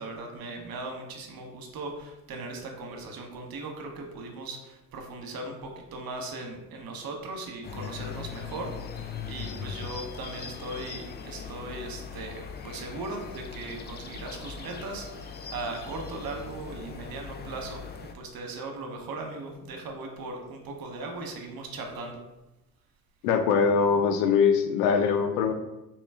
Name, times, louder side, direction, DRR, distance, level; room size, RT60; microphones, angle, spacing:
voice 1, 0.0-17.8 18.1-22.2, right 2 dB, 55° right, 2 dB, 0.9 m, -38 dB
sound 1, 7.6-18.1, left 6 dB, 25° left, 0.3 m, -40 dB
voice 2, 23.2-25.5, left 6 dB, 85° left, 7 dB, 0.5 m, -22 dB
3.0 x 2.9 x 3.4 m, 0.95 s
hypercardioid pair, 55°, 43 cm